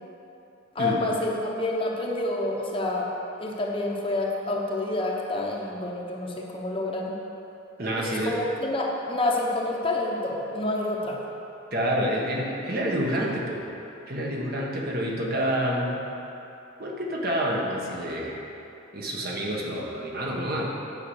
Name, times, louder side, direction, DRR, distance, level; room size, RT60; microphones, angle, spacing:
voice 1, 0.7-3.1 3.4-7.1 8.0-11.2, left 2 dB, 25° left, -2 dB, 1.0 m, -28 dB
voice 2, 7.8-8.4 11.7-13.6 14.1-16.0 16.8-18.4 18.9-20.7, equal, 45° right, -2 dB, 1.4 m, -28 dB
9.8 x 5.7 x 7.9 m, 3.0 s
head